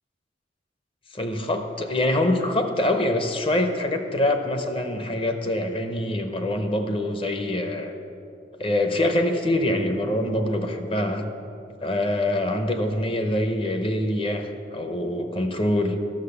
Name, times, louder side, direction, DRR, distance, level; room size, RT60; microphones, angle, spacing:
voice 1, 1.1-7.9 8.6-11.2 11.8-16.0, left 1 dB, 30° left, 6 dB, 0.7 m, -25 dB
11.5 x 6.1 x 6.7 m, 2.8 s
head